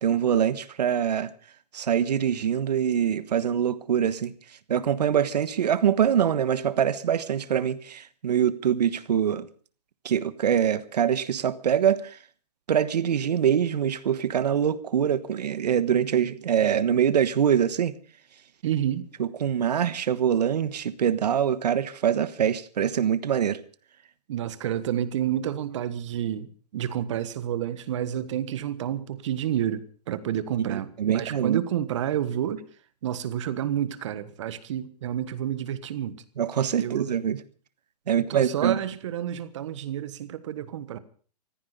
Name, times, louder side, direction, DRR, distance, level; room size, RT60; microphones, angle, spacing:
voice 1, 0.0-1.3 1.7-4.3 4.7-9.5 10.0-12.2 12.7-17.9 19.2-23.6 30.7-31.6 36.4-37.4 38.1-38.8, right 9 dB, 85° right, 1.4 m, -24 dB
voice 2, 18.6-19.1 24.3-32.6 33.0-36.2 36.8-37.1 38.3-41.0, right 10 dB, 50° right, 1.5 m, -29 dB
14.5 x 14.5 x 6.7 m
hypercardioid pair, 170°, 20 cm